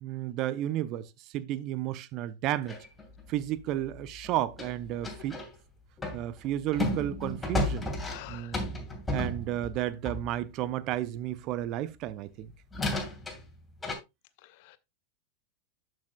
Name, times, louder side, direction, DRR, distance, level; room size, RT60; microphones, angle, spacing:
voice 1, 0.0-2.8 3.3-5.4 6.1-7.9 8.3-8.6 9.1-12.5, right 13 dB, 40° right, 0.6 m, -32 dB
sound 1, 2.7-5.5 6.0-10.4 12.1-12.2 12.7-13.9, left 1 dB, 10° left, 2.6 m, -34 dB
voice 2, 8.0-8.6 14.4-14.8, left 17 dB, 50° left, 0.8 m, -47 dB
11.5 x 6.2 x 2.2 m
figure-of-eight pair, 90°, 0 cm